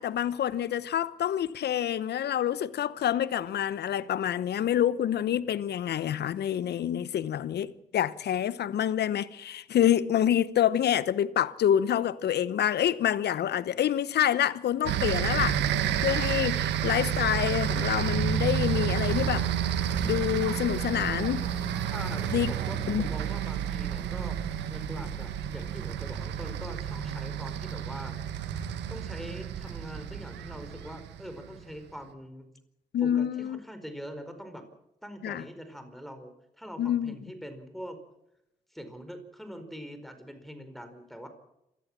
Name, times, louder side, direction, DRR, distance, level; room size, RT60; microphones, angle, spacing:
voice 1, 0.0-15.6 16.0-19.5 20.0-21.4 22.3-22.5 22.9-23.1 32.9-33.6 35.2-35.4 36.8-37.1, left 10 dB, 70° left, 0.9 m, -27 dB
sound 1, 14.8-31.6, right 9 dB, 85° right, 1.4 m, -30 dB
sound 2, 17.9-31.0, left 2 dB, 25° left, 7.3 m, -54 dB
voice 2, 21.9-24.4 24.7-28.2 28.9-32.5 33.0-34.6 35.0-38.0 38.7-41.3, equal, ahead, 4.8 m, -43 dB
26.5 x 15.5 x 7.5 m
hypercardioid pair, 40°, 18 cm